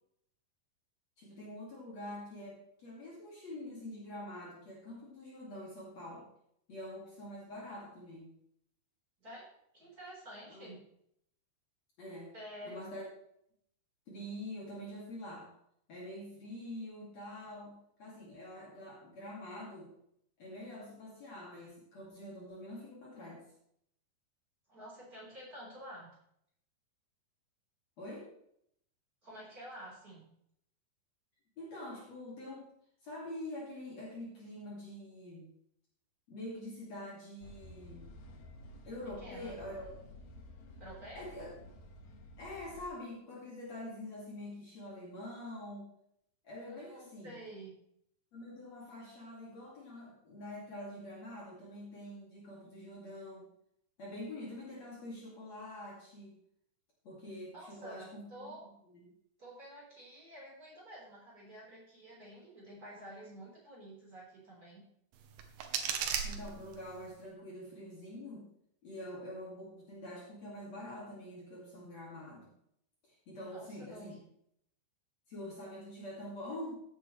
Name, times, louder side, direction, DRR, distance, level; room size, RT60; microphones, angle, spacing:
voice 1, 1.2-6.3 6.7-8.3 10.5-10.7 12.0-12.3 12.7-13.0 14.1-15.5 15.9-19.9 20.4-23.4 28.0-28.3 31.6-32.7 33.0-35.5 36.3-38.1 38.8-39.9 41.2-41.5 42.4-45.9 46.4-47.3 48.3-53.5 54.0-56.4 57.0-58.5 66.2-68.5 68.8-72.5 73.3-74.2 75.3-76.8, left 1 dB, 45° left, -4 dB, 3.4 m, -45 dB
voice 2, 9.7-10.8 12.3-12.9 24.7-26.1 29.2-30.3 39.0-39.5 40.8-41.3 46.7-47.7 57.5-58.6 59.4-64.8 73.5-74.1, right 1 dB, 20° right, -6 dB, 4.7 m, -50 dB
sound 1, 37.4-42.9, left 1 dB, 75° left, 3.5 m, -52 dB
sound 2, 65.1-67.1, right 7 dB, 70° right, 2.6 m, -37 dB
15.5 x 8.6 x 3.3 m, 0.72 s
omnidirectional pair, 4.4 m